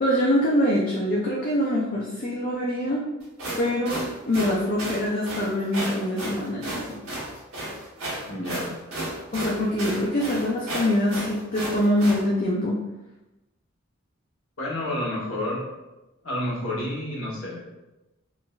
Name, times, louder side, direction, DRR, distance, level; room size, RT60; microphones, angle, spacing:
voice 1, 0.0-3.1 3.6-7.0 9.3-12.8, left 1 dB, 40° left, -3 dB, 0.4 m, -24 dB
sound 1, 3.2-12.2, right 1 dB, 80° right, 1.2 m, -33 dB
voice 2, 8.3-8.8 14.6-15.7 16.2-17.6, left 1 dB, 80° left, -5 dB, 1.0 m, -29 dB
3.8 x 2.5 x 2.3 m, 1.0 s
head